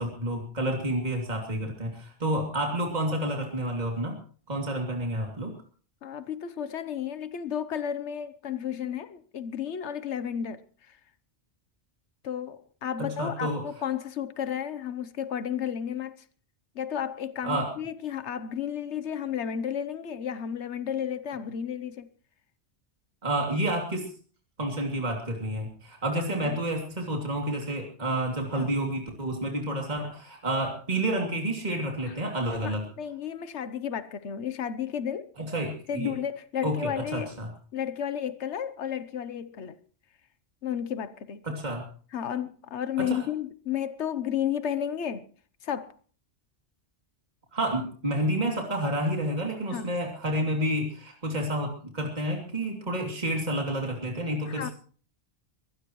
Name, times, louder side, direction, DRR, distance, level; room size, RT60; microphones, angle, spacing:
voice 1, 0.0-4.2 4.5-5.5 13.0-13.6 17.4-17.7 23.2-24.1 24.6-32.8 35.4-36.1 36.6-37.5 41.4-41.8 43.0-43.2 47.5-54.7, right 1 dB, 40° right, 2.9 m, -29 dB
voice 2, 6.0-10.6 10.9-11.0 12.2-16.2 16.7-22.1 26.4-26.6 28.5-28.7 32.1-32.2 32.6-35.3 35.9-37.3 37.7-39.8 40.6-41.4 42.1-45.3 45.6-45.9 49.7-49.9 54.5-54.7, left 9 dB, 85° left, 1.2 m, -32 dB
22.5 x 18.0 x 3.1 m
omnidirectional pair, 1.1 m